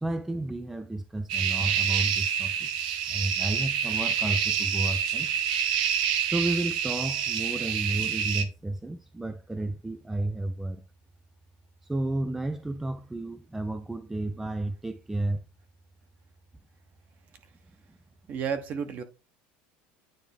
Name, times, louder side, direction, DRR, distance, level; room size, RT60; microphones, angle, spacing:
voice 1, 0.0-5.3 6.3-10.8 11.8-15.4, right 2 dB, 5° right, 0.4 m, -32 dB
sound 1, 1.3-8.4, right 8 dB, 90° right, 0.9 m, -27 dB
voice 2, 18.3-19.0, right 7 dB, 40° right, 1.1 m, -31 dB
9.2 x 3.4 x 3.4 m
cardioid pair, 150°, 5 cm